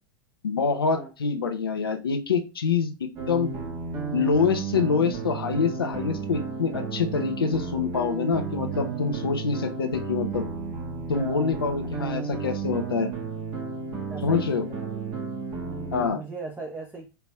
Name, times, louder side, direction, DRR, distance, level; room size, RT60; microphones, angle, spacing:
voice 1, 0.4-3.5 4.1-10.4 11.1-13.1 14.2-14.6 15.9-16.2, left 5 dB, 85° left, 6 dB, 0.8 m, -26 dB
sound 1, 3.2-16.1, right 5 dB, 45° right, 1.6 m, -33 dB
voice 2, 11.0-11.6 12.0-12.3 14.1-15.2 15.6-17.1, right 3 dB, 10° right, 0 dB, 1.0 m, -39 dB
4.5 x 4.0 x 2.3 m, 0.29 s
hypercardioid pair, 95°, 12 cm